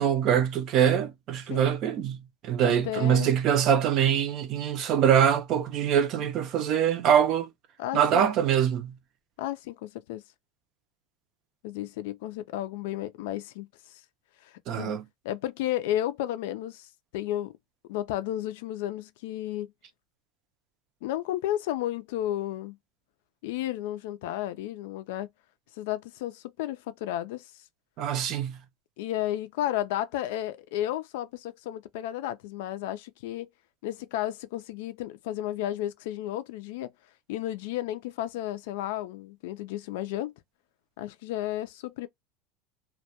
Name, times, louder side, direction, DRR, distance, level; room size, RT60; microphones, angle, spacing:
voice 1, 0.0-2.2 2.4-7.5 7.9-8.9 14.7-15.0 28.0-28.6, right 9 dB, 40° right, 0.4 m, -24 dB
voice 2, 2.6-3.3 7.8-8.3 9.4-10.2 11.6-13.7 14.4-14.9 15.2-17.5 17.9-19.7 21.0-22.8 23.4-25.3 25.8-27.5 29.0-33.5 33.8-36.9 37.3-40.3 41.0-42.1, left 13 dB, 75° left, 0.3 m, -33 dB
2.2 x 2.1 x 2.7 m
supercardioid pair, 150°, 0 cm